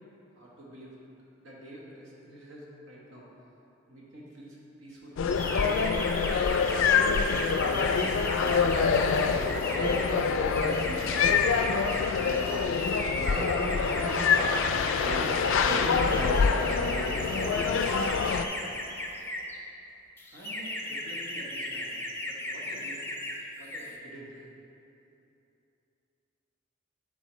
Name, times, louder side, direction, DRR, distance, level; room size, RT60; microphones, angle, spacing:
voice 1, 0.3-1.0 1.4-3.3 3.9-5.2 20.3-23.1 23.6-24.4, equal, 80° right, -5 dB, 1.4 m, -48 dB
sound 1, 5.2-18.4, left 5 dB, 80° left, 0.3 m, -26 dB
sound 2, 5.3-19.6 20.2-23.4 23.6-23.9, left 1 dB, 10° left, 0.4 m, -36 dB
voice 2, 6.9-8.7 9.2-11.3 12.2-12.5 13.2-14.7 15.0-17.7, right 1 dB, 30° right, -7 dB, 1.0 m, -36 dB
10.5 x 4.0 x 3.1 m, 2.8 s
head